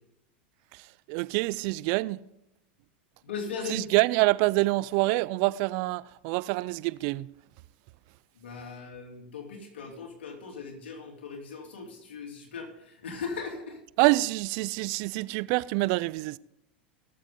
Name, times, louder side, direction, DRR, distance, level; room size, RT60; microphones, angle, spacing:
voice 1, 0.7-2.2 3.7-7.3 14.0-16.4, right 21 dB, 55° right, 0.4 m, -26 dB
voice 2, 3.2-3.8 8.3-13.8, left 5 dB, 85° left, 2.9 m, -38 dB
18.5 x 7.3 x 3.8 m
hypercardioid pair, 105°, 6 cm